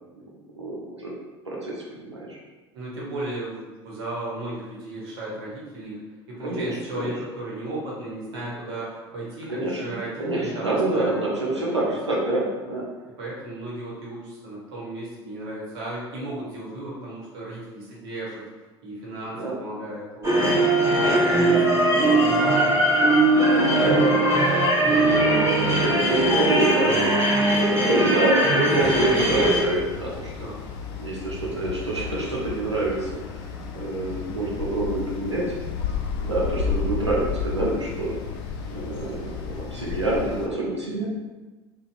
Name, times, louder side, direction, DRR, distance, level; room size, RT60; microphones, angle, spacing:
voice 1, 0.5-1.1 1.5-2.4 6.4-7.1 9.5-9.8 10.2-12.9 19.3-19.6 20.3-20.6 20.9-21.6 23.6-24.2 24.7-27.1 27.7-30.5 31.0-33.4 33.7-35.5 36.2-38.2 38.7-41.1, right 2 dB, 85° right, -4 dB, 0.7 m, -27 dB
voice 2, 2.7-6.0 6.3-11.8 13.1-18.4 18.8-20.4 20.9-21.0 21.2-22.8 30.4-30.6 37.9-38.1, right 1 dB, 60° right, -5 dB, 1.1 m, -35 dB
sound 1, 20.2-29.6, right 1 dB, 20° right, 1.2 m, -20 dB
sound 2, 28.8-40.5, left 6 dB, 55° left, 0.4 m, -32 dB
3.9 x 2.2 x 2.6 m, 1.2 s
figure-of-eight pair, 65°, 14 cm